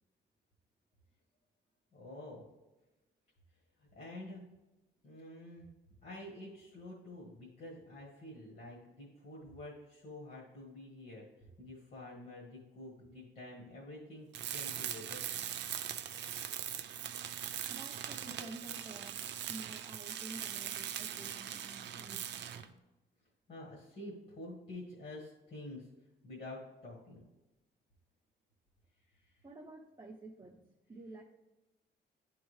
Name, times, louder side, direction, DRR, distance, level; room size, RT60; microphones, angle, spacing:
voice 1, 1.9-2.5 3.8-4.4 5.0-5.7 6.0-11.3 11.6-15.3 23.5-25.9 26.2-27.2 29.1-29.4, left 1 dB, 45° left, -4 dB, 1.6 m, -48 dB
Tools, 14.3-22.7, right 10 dB, 60° right, 0.5 m, -41 dB
voice 2, 17.7-22.3 29.4-30.6 30.9-31.2, right 2 dB, 20° right, -4 dB, 0.8 m, -50 dB
10.5 x 3.6 x 3.2 m, 1.0 s
cardioid pair, 90°, 20 cm